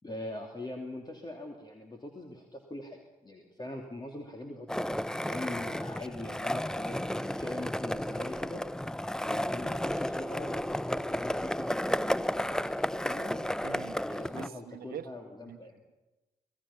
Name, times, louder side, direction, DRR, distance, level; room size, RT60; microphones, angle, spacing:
voice 1, 0.0-8.6 9.2-13.4 14.0-15.8, left 1 dB, 25° left, 1 dB, 2.8 m, -42 dB
Skateboard, 4.7-14.5, left 1 dB, 5° left, 0.6 m, -33 dB
voice 2, 13.6-14.0 14.3-15.1 15.5-15.6, right 9 dB, 65° right, 10 dB, 1.2 m, -43 dB
26.0 x 18.0 x 5.8 m, 1.1 s
hypercardioid pair, 45°, 17 cm